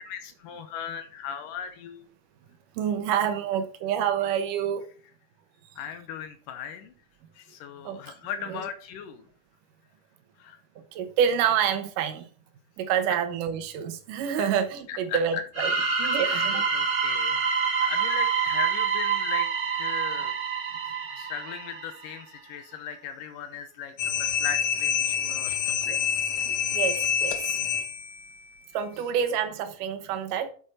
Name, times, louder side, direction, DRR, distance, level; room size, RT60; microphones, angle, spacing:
voice 1, 0.0-2.1 5.8-6.9 7.4-9.3 10.4-10.6 13.1-13.2 14.4-14.5 14.9-15.4 16.2-17.5 17.8-19.5 19.7-20.3 21.2-25.5 25.9-26.1, left 8 dB, 85° left, 2.5 m, -37 dB
voice 2, 2.8-4.8 7.9-8.0 8.5-8.6 10.9-12.3 12.8-15.7 16.0-16.7 25.9-26.0 26.5-27.4 28.7-30.5, right 8 dB, 75° right, 2.5 m, -27 dB
sound 1, 15.5-22.2, right 5 dB, 40° right, 1.0 m, -27 dB
sound 2, 24.0-28.2, left 8 dB, 65° left, 1.7 m, -27 dB
9.0 x 8.2 x 4.2 m
omnidirectional pair, 3.8 m